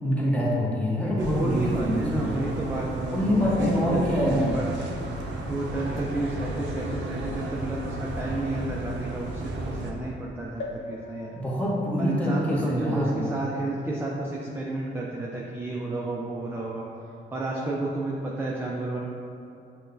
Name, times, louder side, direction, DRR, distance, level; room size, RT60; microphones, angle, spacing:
voice 1, 0.0-2.3 3.1-4.5 11.4-13.2, equal, 5° left, -6 dB, 0.9 m, -25 dB
voice 2, 1.0-4.9 5.5-11.3 12.0-16.8 17.3-19.0, right 2 dB, 10° right, -4 dB, 0.4 m, -31 dB
sound 1, 1.2-9.9, right 1 dB, 65° right, 0.5 m, -34 dB
sound 2, 10.6-14.3 14.9-15.0 15.2-15.3, left 2 dB, 85° left, 0.7 m, -43 dB
6.0 x 2.3 x 2.5 m, 2.7 s
cardioid pair, 90°, 20 cm